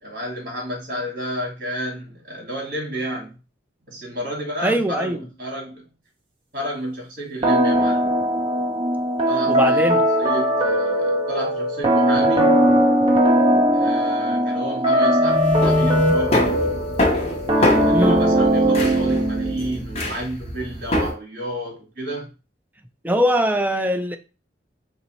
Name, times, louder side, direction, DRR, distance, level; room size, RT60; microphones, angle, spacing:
voice 1, 0.0-3.4 3.9-5.8 6.5-8.1 9.3-12.7 13.7-16.5 17.5-22.3, right 1 dB, 50° right, 2.0 m, -31 dB
voice 2, 4.6-5.2 9.5-10.0 17.9-18.2 23.0-24.2, equal, 10° right, 0.4 m, -21 dB
sound 1, 7.4-19.8, equal, 30° right, 0.9 m, -19 dB
sound 2, 15.2-21.1, left 1 dB, 35° left, 0.9 m, -23 dB
4.0 x 2.7 x 4.4 m
head